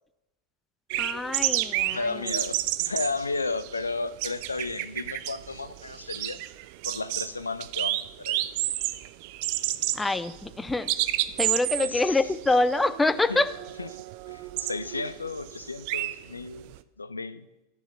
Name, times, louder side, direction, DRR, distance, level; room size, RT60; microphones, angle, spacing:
sound 1, 0.9-16.8, right 16 dB, 45° right, 0.5 m, -31 dB
voice 1, 1.0-2.2 9.9-10.9 11.4-13.5, left 2 dB, 10° left, 13 dB, 0.5 m, -25 dB
voice 2, 1.9-6.4 6.8-8.4 11.8-12.2 13.3-13.4 13.8-13.9 14.3-17.5, left 3 dB, 80° left, 15 dB, 0.5 m, -33 dB
11.5 x 7.2 x 6.7 m, 0.96 s
figure-of-eight pair, 90°, 0 cm